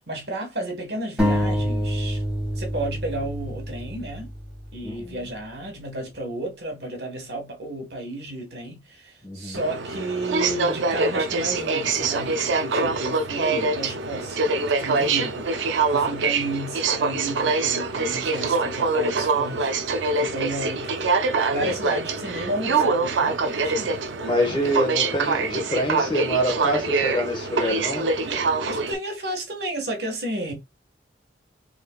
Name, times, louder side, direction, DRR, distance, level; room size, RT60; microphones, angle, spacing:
voice 1, 0.1-2.2 2.5-4.3 4.7-19.7 20.1-20.9 21.5-24.0 28.2-28.4 28.7-30.5, right 1 dB, 65° right, 1.4 m, -32 dB
sound 1, 1.2-4.8, equal, 5° right, 2.0 m, -26 dB
voice 2, 4.8-5.1 9.2-9.6 21.6-21.7 24.2-28.0, equal, 25° left, 1.3 m, -26 dB
Aircraft, 9.5-28.9, right 4 dB, 90° right, 0.5 m, -24 dB
3.7 x 3.3 x 2.3 m
head